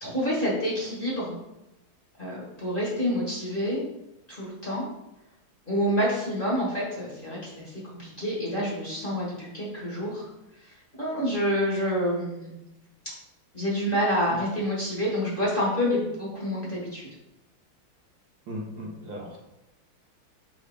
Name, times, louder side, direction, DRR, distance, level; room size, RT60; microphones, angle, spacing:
voice 1, 0.0-1.4 2.2-3.9 4.3-4.8 5.7-10.3 10.6-12.5 13.5-17.1, equal, 25° left, -5 dB, 1.7 m, -28 dB
voice 2, 18.5-19.4, equal, 65° right, -2 dB, 1.8 m, -37 dB
6.3 x 5.3 x 3.6 m, 0.91 s
omnidirectional pair, 2.3 m